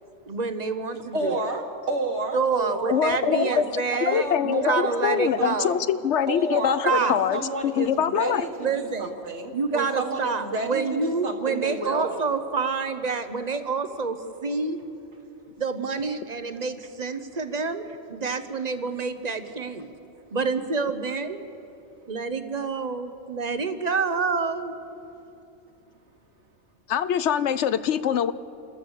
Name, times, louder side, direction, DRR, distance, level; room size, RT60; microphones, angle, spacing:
voice 1, 0.3-1.4 2.3-5.8 6.8-7.2 8.6-9.1 9.5-14.8 15.6-19.9 20.3-21.4 22.1-24.8, right 4 dB, 35° right, 10 dB, 1.1 m, -28 dB
voice 2, 1.1-3.6 3.9-5.7 6.3-12.2, right 2 dB, 65° right, 3 dB, 2.1 m, -31 dB
voice 3, 2.9-8.4 26.9-28.3, left 8 dB, 70° left, 14 dB, 0.9 m, -24 dB
28.5 x 13.5 x 7.2 m, 2.8 s
omnidirectional pair, 1.3 m